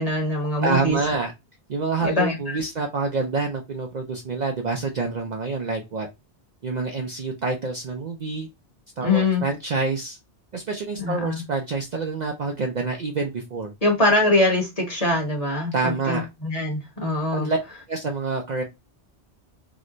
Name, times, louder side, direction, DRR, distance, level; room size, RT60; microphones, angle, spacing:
voice 1, 0.0-1.0 2.0-2.6 9.0-9.4 11.0-11.4 13.8-17.5, left 2 dB, 35° left, 0 dB, 1.2 m, -23 dB
voice 2, 0.6-1.3 1.7-6.1 6.6-8.5 9.0-10.2 10.5-13.7 15.7-16.3 17.3-17.6 17.9-18.6, right 3 dB, 50° right, 2 dB, 0.5 m, -27 dB
2.9 x 2.1 x 3.7 m, 0.22 s
omnidirectional pair, 1.1 m